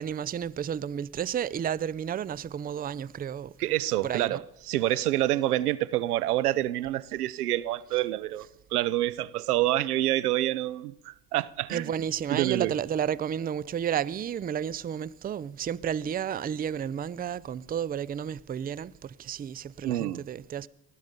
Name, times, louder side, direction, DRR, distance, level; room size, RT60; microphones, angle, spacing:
voice 1, 0.0-3.5 4.0-4.4 11.7-20.7, right 9 dB, 20° right, 0.5 m, -32 dB
voice 2, 3.6-4.4 4.7-11.9 12.3-12.7 19.8-20.2, right 15 dB, 90° right, 0.7 m, -27 dB
19.0 x 13.5 x 5.3 m
hypercardioid pair, 70°, 44 cm